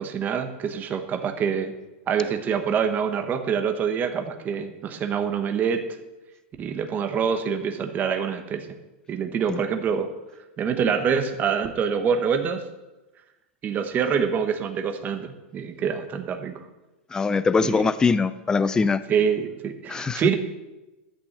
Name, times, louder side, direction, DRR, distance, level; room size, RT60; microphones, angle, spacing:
voice 1, 0.0-1.7 2.1-5.8 6.6-8.8 9.1-10.1 10.6-12.6 13.6-16.6 17.6-17.9 19.1-20.3, right 7 dB, 25° right, 6 dB, 1.1 m, -25 dB
voice 2, 17.1-19.0 19.9-20.2, left 4 dB, 10° left, 14 dB, 0.4 m, -22 dB
11.5 x 6.2 x 7.8 m, 1.0 s
supercardioid pair, 140°, 7 cm